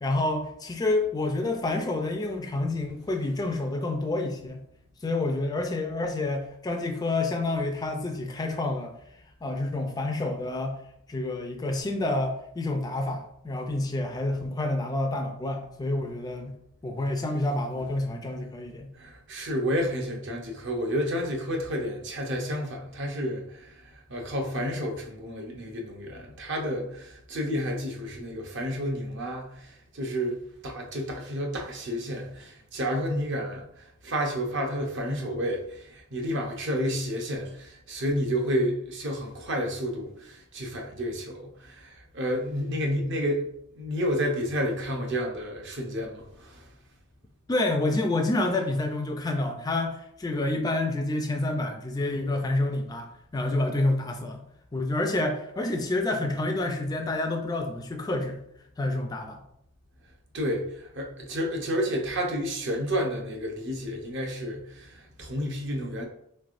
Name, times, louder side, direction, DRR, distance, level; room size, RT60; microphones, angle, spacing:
voice 1, 0.0-4.6 5.0-8.9 9.4-10.8 11.1-16.5 16.8-18.9 47.5-53.1 53.3-54.4 54.7-58.4 58.8-59.4, left 2 dB, 20° left, 0.3 m, -28 dB
voice 2, 19.0-43.4 43.7-46.7 60.3-66.0, equal, 55° right, 0.7 m, -30 dB
4.1 x 3.3 x 2.5 m
head